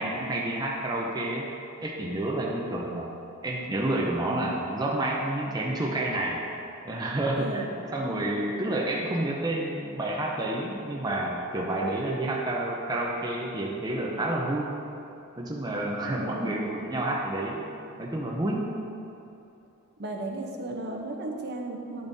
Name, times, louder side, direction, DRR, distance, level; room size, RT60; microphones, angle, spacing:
voice 1, 0.0-1.5 1.8-3.1 3.4-6.4 6.8-14.8 15.4-17.7 18.0-18.7, right 1 dB, 20° right, -2 dB, 0.6 m, -29 dB
voice 2, 7.4-7.7 16.0-16.7 20.0-22.1, right 2 dB, 50° right, 1 dB, 0.8 m, -35 dB
10.0 x 7.0 x 2.7 m, 2.8 s
head